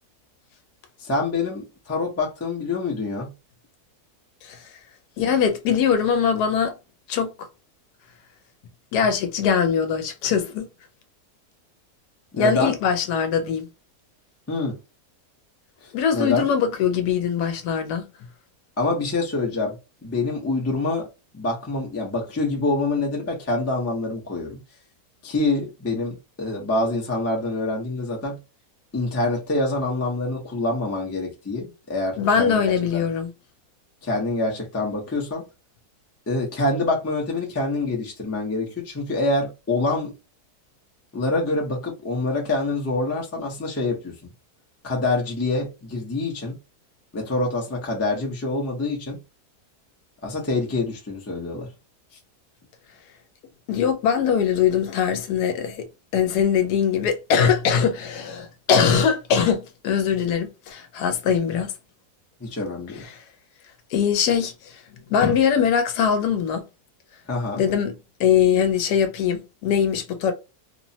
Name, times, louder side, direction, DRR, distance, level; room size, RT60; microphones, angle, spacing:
voice 1, 1.0-3.3 12.3-12.7 14.5-14.7 15.8-16.4 18.8-19.7 20.0-21.1 21.3-24.6 25.2-28.4 28.9-33.0 34.0-35.4 36.3-40.1 41.1-44.2 44.8-46.6 47.1-49.2 50.2-51.7 62.4-63.0 67.3-67.6, left 2 dB, 20° left, 0.4 m, -26 dB
voice 2, 5.2-6.7 7.1-7.5 8.9-10.7 12.4-13.7 15.9-18.1 32.2-33.3 53.7-55.8 56.1-61.7 63.0-63.2 63.9-64.8 65.1-66.6 67.5-67.9 68.2-70.3, left 7 dB, 85° left, 1.1 m, -22 dB
3.0 x 2.0 x 2.7 m
omnidirectional pair, 1.7 m